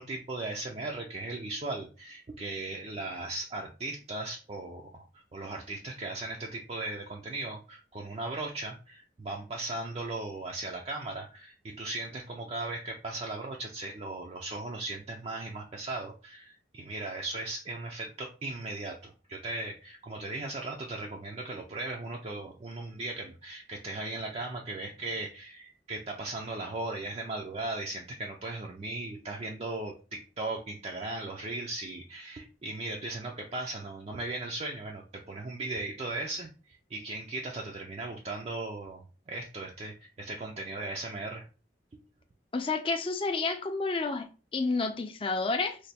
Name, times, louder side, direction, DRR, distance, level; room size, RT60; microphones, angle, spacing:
voice 1, 0.0-5.0 5.3-41.4, right 2 dB, 35° right, 0.4 m, -37 dB
voice 2, 42.5-45.8, left 3 dB, 30° left, 0.4 m, -30 dB
3.2 x 2.2 x 4.1 m
head